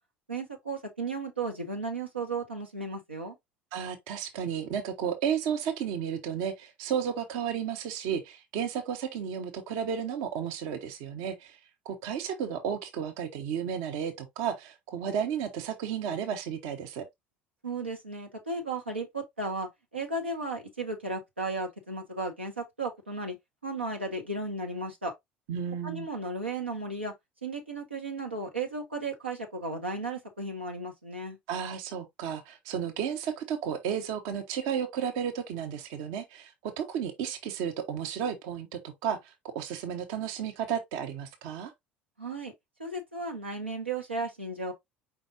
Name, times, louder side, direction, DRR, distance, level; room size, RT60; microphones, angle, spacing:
voice 1, 0.3-3.4 17.6-23.4 23.6-25.1 25.8-27.1 27.4-31.4 42.2-42.5 42.8-44.7, right 3 dB, 90° right, 1.0 m, -35 dB
voice 2, 3.7-11.6 11.8-17.1 25.5-26.1 31.5-41.7, right 8 dB, 60° right, 0.9 m, -33 dB
4.7 x 3.9 x 2.7 m
figure-of-eight pair, 65°, 6 cm